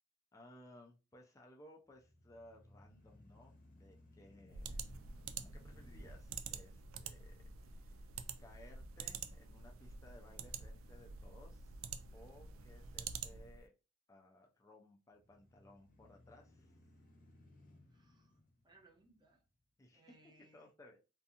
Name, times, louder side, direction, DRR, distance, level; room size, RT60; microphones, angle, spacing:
voice 1, 0.3-4.9 5.4-11.8 12.1-13.7 14.1-16.8 19.8-20.2 20.5-21.0, left 1 dB, 15° left, 1 dB, 0.3 m, -61 dB
sound 1, 1.9-10.0 10.5-10.6 15.1-19.6, left 1 dB, 45° left, 0.7 m, -64 dB
sound 2, 4.5-13.6, right 6 dB, 90° right, 0.3 m, -48 dB
voice 2, 17.9-18.4 18.6-19.4 19.9-20.7, right 2 dB, 20° right, 0 dB, 0.6 m, -67 dB
2.6 x 2.4 x 2.7 m, 0.31 s
head